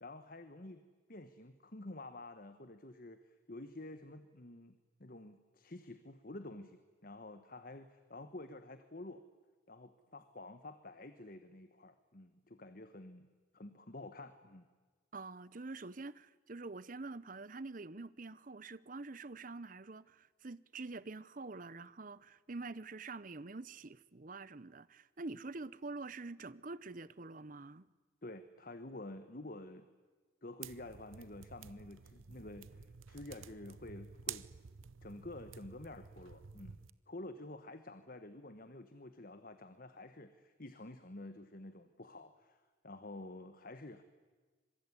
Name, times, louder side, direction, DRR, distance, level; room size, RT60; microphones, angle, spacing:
voice 1, 0.0-0.8 1.1-9.2 9.7-13.3 13.5-14.7 28.2-29.9 30.4-34.5 35.0-44.0, left 2 dB, 45° left, 1.2 m, -50 dB
voice 2, 15.1-27.9, right 3 dB, 40° right, 0.8 m, -46 dB
sound 1, 30.6-36.9, right 8 dB, 85° right, 0.8 m, -50 dB
25.5 x 23.0 x 9.8 m
head